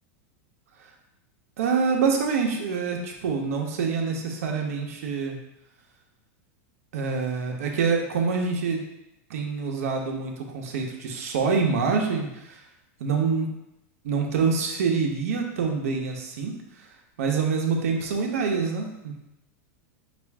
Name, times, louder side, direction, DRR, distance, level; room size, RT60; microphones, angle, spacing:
voice 1, 1.6-5.4 6.9-8.8 9.3-12.6 13.0-13.5 14.0-16.5 16.8-16.9 17.2-19.2, right 5 dB, 80° right, 1 dB, 0.9 m, -26 dB
6.0 x 2.5 x 3.5 m, 0.89 s
supercardioid pair, 160°, 8 cm